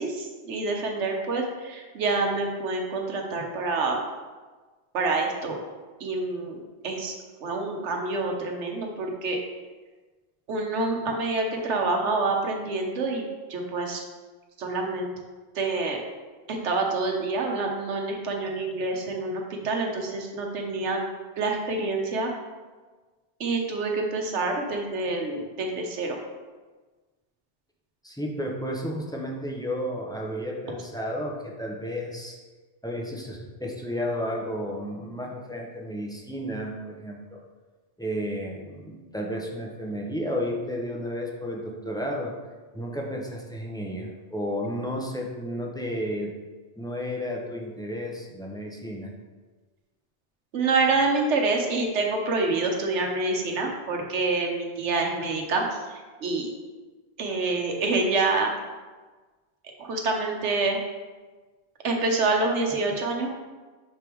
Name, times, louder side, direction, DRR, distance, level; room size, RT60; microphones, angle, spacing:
voice 1, 0.0-4.0 4.9-5.6 6.0-7.1 7.4-9.4 10.5-13.2 13.5-14.0 14.6-15.1 15.5-16.0 16.5-21.0 21.4-22.3 23.4-26.2 50.5-55.6 56.2-56.5 57.2-58.5 59.8-60.8 61.8-63.3, right 3 dB, 85° right, 2 dB, 1.2 m, -27 dB
voice 2, 28.0-32.4 32.8-37.4 38.0-42.3 42.7-46.3 46.8-49.2, equal, 5° left, -2 dB, 0.5 m, -32 dB
6.5 x 3.5 x 4.5 m, 1.3 s
omnidirectional pair, 1.2 m